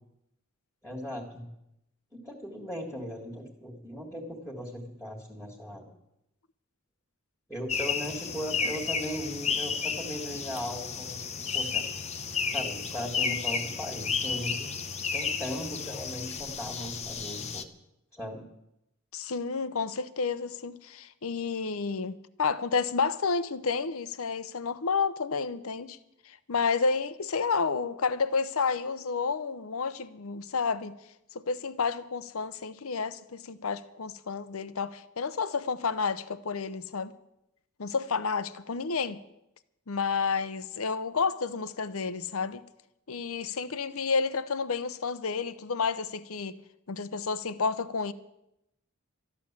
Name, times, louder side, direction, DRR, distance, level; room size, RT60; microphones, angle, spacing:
voice 1, 0.8-1.5 2.1-5.9 7.5-11.9 12.5-14.7 15.1-17.7 18.1-18.5, equal, ahead, 1.8 m, -38 dB
sound 1, 7.7-17.6, left 5 dB, 30° left, 0.8 m, -32 dB
voice 2, 19.1-26.0 26.3-31.0 31.3-37.1 37.8-39.2 39.9-42.6 43.1-46.6 46.9-48.1, left 5 dB, 70° left, 0.7 m, -30 dB
13.5 x 10.5 x 7.4 m
head